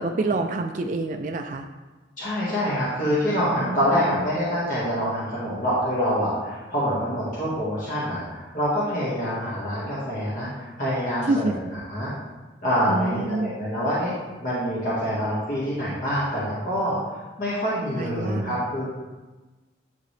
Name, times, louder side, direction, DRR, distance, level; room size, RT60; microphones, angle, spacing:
voice 1, 0.0-1.7 3.5-4.3 11.2-11.7 12.9-13.5 18.0-18.6, right 2 dB, 40° right, 5 dB, 0.3 m, -27 dB
voice 2, 2.2-11.5 11.9-12.1 12.6-14.1 14.4-17.0 17.4-18.9, equal, 45° left, -9 dB, 1.7 m, -26 dB
9.7 x 3.8 x 3.3 m, 1.2 s
head